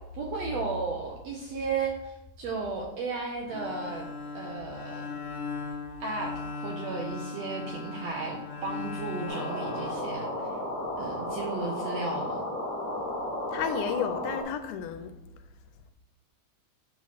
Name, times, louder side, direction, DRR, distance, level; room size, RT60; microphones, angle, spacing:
voice 1, 0.1-4.1 4.3-5.1 6.0-10.5 11.0-12.4, right 4 dB, 75° right, 1.6 m, -34 dB
Bowed string instrument, 3.5-10.6, left 4 dB, 65° left, 1.4 m, -38 dB
sound 1, 9.3-14.4, left 1 dB, 25° left, 1.8 m, -33 dB
voice 2, 13.5-15.1, left 7 dB, 80° left, 2.1 m, -32 dB
8.3 x 3.1 x 5.6 m
omnidirectional pair, 3.6 m